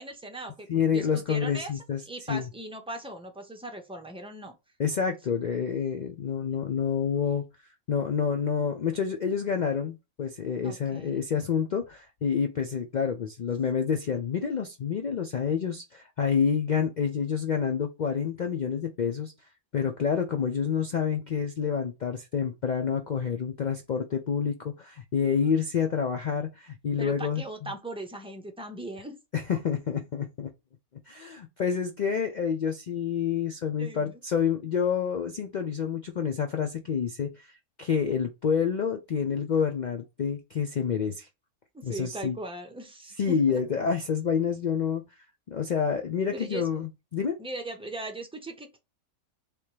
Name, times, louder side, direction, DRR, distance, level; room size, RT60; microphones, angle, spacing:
voice 1, 0.0-1.7 2.1-4.5 10.6-11.2 27.0-29.2 33.8-34.2 41.7-43.6 46.3-46.6 47.4-48.8, right 2 dB, 5° right, 0.5 m, -39 dB
voice 2, 0.7-2.0 2.3-2.5 4.8-7.5 7.9-19.3 19.7-27.7 29.3-30.5 31.1-41.3 41.8-42.4 43.2-45.0 45.5-47.4, left 7 dB, 85° left, 0.4 m, -28 dB
3.4 x 2.8 x 4.6 m
omnidirectional pair, 1.5 m